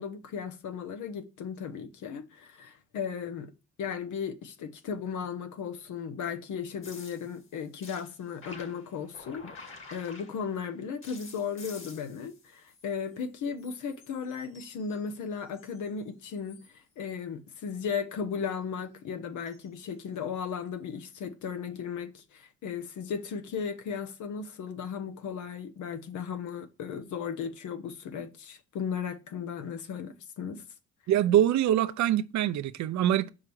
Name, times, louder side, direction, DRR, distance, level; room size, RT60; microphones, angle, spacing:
voice 1, 0.0-3.5 3.8-16.6 17.0-30.6, left 6 dB, 75° left, 1.0 m, -36 dB
sound 1, 6.8-10.6 11.0-13.3 13.6-15.9 16.3-16.8 19.5-19.7 20.6-20.7, left 3 dB, 45° left, 2.1 m, -50 dB
voice 2, 31.1-33.3, right 11 dB, 65° right, 0.6 m, -24 dB
5.5 x 5.0 x 6.1 m
cardioid pair, 90°, 30 cm